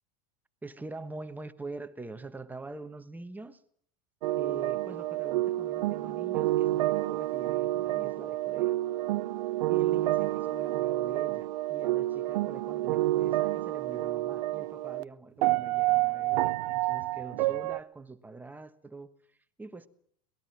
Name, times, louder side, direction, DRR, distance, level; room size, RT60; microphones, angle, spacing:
voice 1, 0.6-3.6 4.4-8.8 9.7-19.9, right 3 dB, 10° right, 1.3 m, -44 dB
sound 1, 4.2-15.0 15.4-17.8, right 17 dB, 80° right, 0.8 m, -29 dB
24.0 x 19.5 x 5.9 m
supercardioid pair, 135°, 21 cm